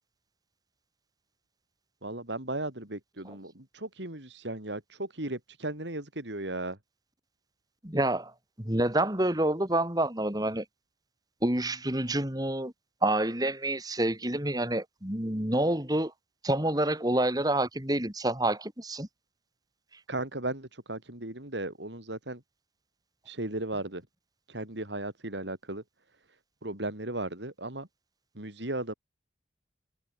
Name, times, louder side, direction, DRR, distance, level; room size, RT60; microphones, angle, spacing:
voice 1, 2.0-6.8 20.1-22.4 23.2-24.0 24.5-25.8 26.6-27.9 28.3-28.9, right 2 dB, 75° right, 4.3 m, -36 dB
voice 2, 7.8-8.3 8.6-10.6 11.4-12.7 13.0-16.1 16.4-19.1, right 1 dB, 20° right, 3.1 m, -28 dB
head